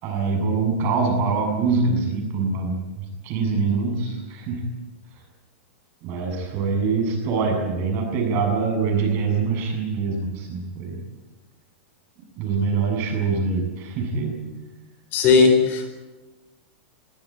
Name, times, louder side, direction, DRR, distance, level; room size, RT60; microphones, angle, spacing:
voice 1, 0.0-4.7 6.0-11.0 12.4-14.5, right 4 dB, 35° right, 3 dB, 7.3 m, -24 dB
voice 2, 15.1-15.9, left 5 dB, 30° left, 7 dB, 4.2 m, -16 dB
22.5 x 17.0 x 9.9 m, 1.1 s
supercardioid pair, 155°, 6 cm